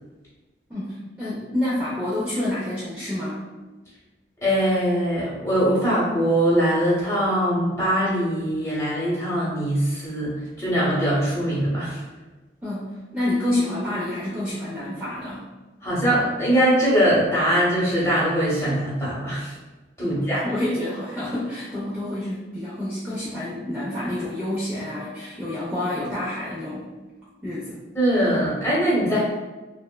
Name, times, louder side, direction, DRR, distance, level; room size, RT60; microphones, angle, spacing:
voice 1, 0.7-3.4 12.6-15.5 20.0-26.9 27.4-27.8, left 1 dB, 10° right, -10 dB, 0.5 m, -28 dB
voice 2, 4.4-12.0 15.8-19.5 20.0-20.5 27.9-29.2, equal, 15° left, -8 dB, 0.9 m, -22 dB
3.3 x 2.0 x 2.2 m, 1.2 s
head